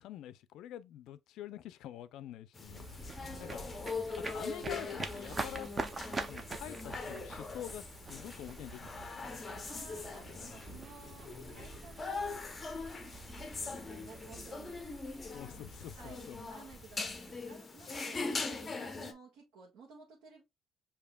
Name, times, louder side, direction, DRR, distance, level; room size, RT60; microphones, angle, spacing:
voice 1, 0.0-2.9 3.4-3.6 4.3-9.3 9.7-9.9 10.7-10.9 15.3-16.4, left 12 dB, 70° left, 0.4 m, -47 dB
sound 1, 2.5-19.1, left 4 dB, 20° left, 0.6 m, -42 dB
sound 2, 2.6-17.8, right 3 dB, 20° right, 0.5 m, -46 dB
voice 2, 3.2-3.7 4.0-4.6 9.7-12.4 13.2-14.8 15.9-20.4, right 4 dB, 75° right, 1.4 m, -55 dB
6.9 x 2.8 x 2.2 m
cardioid pair, 175°, 0 cm